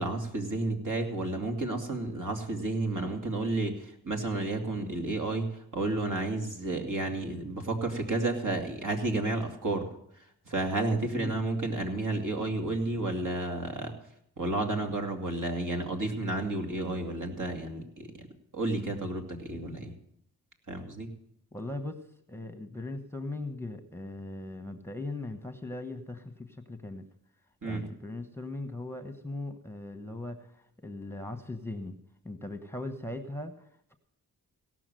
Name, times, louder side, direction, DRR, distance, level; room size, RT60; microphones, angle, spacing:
voice 1, 0.0-9.9 10.5-13.9 14.4-18.3 18.5-19.9 20.7-21.1 27.6-27.8, right 2 dB, 50° right, 2 dB, 2.6 m, -31 dB
voice 2, 21.5-22.0 22.3-27.0 27.6-30.5 30.8-32.0 32.2-33.5, left 2 dB, 5° left, 9 dB, 1.2 m, -39 dB
17.5 x 6.1 x 7.7 m, 0.72 s
cardioid pair, 50°, 39 cm